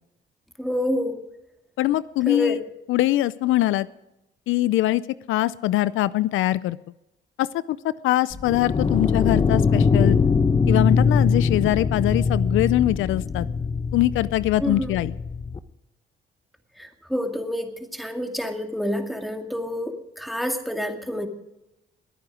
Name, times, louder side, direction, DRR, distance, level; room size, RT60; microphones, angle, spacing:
voice 1, 0.6-1.2 2.3-2.6 14.6-15.0 16.8-21.3, left 1 dB, ahead, 4 dB, 2.2 m, -28 dB
voice 2, 1.8-2.6 2.9-3.9 4.5-5.0 5.3-6.8 7.4-7.8 8.0-10.2 10.7-13.5 13.9-15.1, left 15 dB, 85° left, 17 dB, 0.5 m, -22 dB
sound 1, 8.3-15.6, left 5 dB, 25° left, 0.9 m, -22 dB
21.5 x 9.3 x 5.0 m, 0.89 s
cardioid pair, 90°, 20 cm